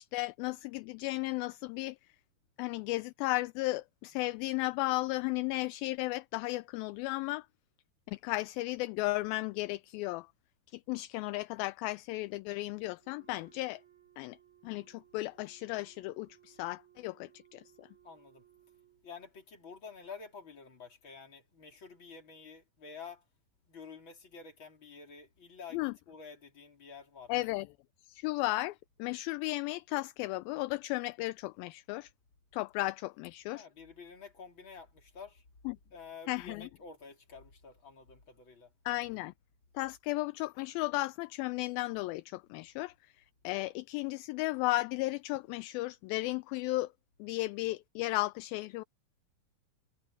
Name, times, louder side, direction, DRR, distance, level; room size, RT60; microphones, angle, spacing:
voice 1, 0.0-2.0 2.6-7.5 8.1-10.3 10.7-13.8 14.2-14.4 14.6-17.9 25.7-25.9 27.3-27.7 28.1-32.1 32.5-33.7 35.7-35.8 36.3-36.7 38.9-39.3 39.8-43.1 43.4-46.9 47.2-48.8, left 20 dB, 80° left, 2.2 m, -35 dB
Wind instrument woodwind instrument, 13.0-19.1, right 12 dB, 55° right, 3.9 m, -63 dB
voice 2, 18.0-18.4 19.0-23.2 23.6-27.5 33.5-35.4 35.9-38.7, left 5 dB, 30° left, 4.3 m, -50 dB
omnidirectional pair, 4.5 m